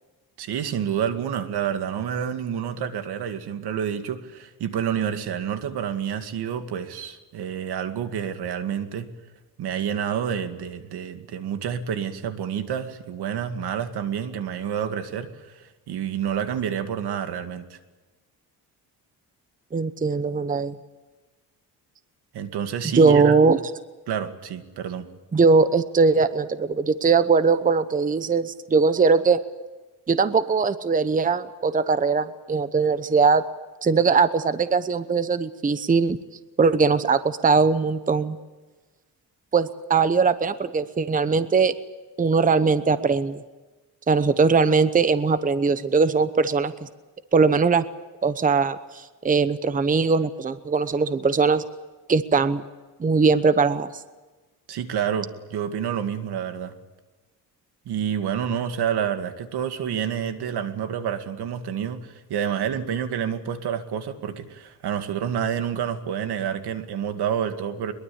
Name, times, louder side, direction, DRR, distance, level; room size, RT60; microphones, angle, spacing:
voice 1, 0.4-9.1 9.6-17.8 22.3-23.4 24.1-25.1 54.7-56.7 57.9-67.9, right 8 dB, 75° right, 8 dB, 2.3 m, -28 dB
voice 2, 19.7-20.7 22.9-23.6 25.3-29.4 30.1-33.4 33.8-36.2 36.6-38.4 39.5-41.7 42.2-43.4 44.1-46.9 47.3-47.8 48.2-51.6 52.1-52.6 53.0-53.9, right 4 dB, 20° right, 12 dB, 0.9 m, -20 dB
22.5 x 22.5 x 8.7 m, 1.2 s
cardioid pair, 130°, 39 cm